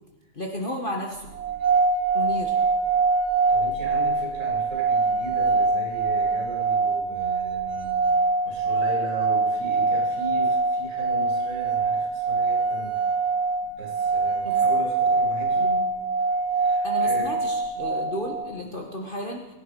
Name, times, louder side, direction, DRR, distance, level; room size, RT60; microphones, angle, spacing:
voice 1, 0.3-1.3 2.1-2.6 14.4-14.6 16.8-19.4, equal, 35° left, 1 dB, 1.6 m, -32 dB
sound 1, 1.3-18.5, right 4 dB, 85° right, 1.5 m, -24 dB
voice 2, 3.5-8.0 8.4-13.1 13.6-15.8 16.5-17.4, right 1 dB, 50° right, -3 dB, 7.7 m, -37 dB
22.5 x 10.5 x 5.4 m, 1.0 s
omnidirectional pair, 1.7 m